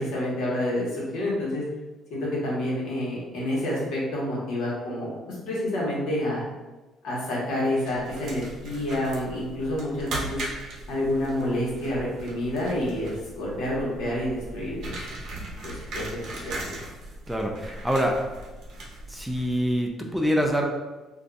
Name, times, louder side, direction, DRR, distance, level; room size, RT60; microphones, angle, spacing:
voice 1, 0.0-1.6 2.1-5.1 5.4-6.4 7.0-10.4 10.9-15.0 15.6-16.8, left 1 dB, 75° left, -5 dB, 1.2 m, -28 dB
sound 1, 7.8-19.8, right 1 dB, 55° right, 0.7 m, -39 dB
voice 2, 17.3-18.2 19.1-20.7, equal, ahead, 0 dB, 0.3 m, -25 dB
2.5 x 2.3 x 3.8 m, 1.2 s
cardioid pair, 165°, 0 cm